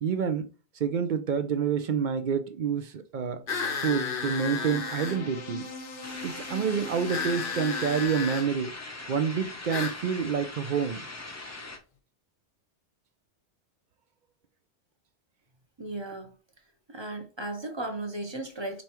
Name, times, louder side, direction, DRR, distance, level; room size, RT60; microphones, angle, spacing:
voice 1, 0.0-0.5 0.7-3.4 3.7-5.7 6.2-8.7 9.1-11.0, right 7 dB, 55° right, 0.6 m, -28 dB
sound 1, 3.2-8.1, left 3 dB, 90° left, 1.2 m, -41 dB
sound 2, 3.5-5.2 7.1-8.5 9.7-10.0, left 5 dB, 55° left, 0.9 m, -33 dB
sound 3, 6.0-11.8, left 2 dB, 20° left, 0.5 m, -41 dB
voice 2, 15.8-16.3 16.9-18.8, right 2 dB, 25° right, 0.8 m, -35 dB
5.4 x 3.3 x 3.0 m
omnidirectional pair, 1.2 m